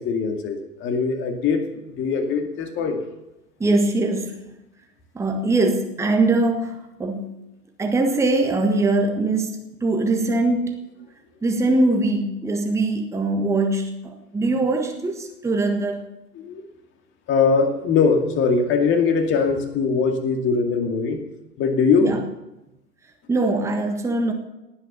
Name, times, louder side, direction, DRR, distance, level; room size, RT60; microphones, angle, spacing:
voice 1, 0.0-3.0 16.3-16.6 17.3-21.2 21.6-22.1, left 5 dB, 25° left, 2.3 m, -21 dB
voice 2, 3.6-4.5 5.1-7.4 7.8-10.8 11.4-16.0 22.0-22.2 23.3-24.3, right 2 dB, 5° right, 1.5 m, -22 dB
18.5 x 9.4 x 6.9 m
figure-of-eight pair, 110°, 50 cm